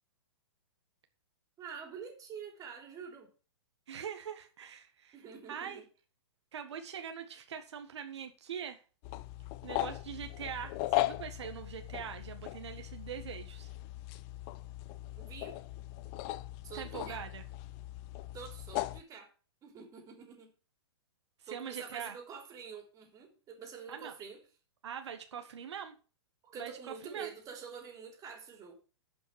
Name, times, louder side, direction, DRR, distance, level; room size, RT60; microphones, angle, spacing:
voice 1, 1.6-3.3 5.1-5.9 15.2-15.6 16.6-17.2 18.3-19.3 19.6-20.5 21.5-24.4 26.4-28.7, right 6 dB, 25° right, 4 dB, 3.4 m, -47 dB
voice 2, 3.9-5.2 5.5-5.8 6.5-8.8 9.6-13.7 16.7-17.4 21.4-22.1 23.9-24.1 24.8-25.9 26.6-27.3, right 8 dB, 75° right, 6 dB, 1.7 m, -43 dB
sound 1, 9.0-19.0, left 16 dB, 35° left, 0.6 m, -38 dB
11.5 x 5.7 x 6.0 m, 0.35 s
hypercardioid pair, 135°, 15 cm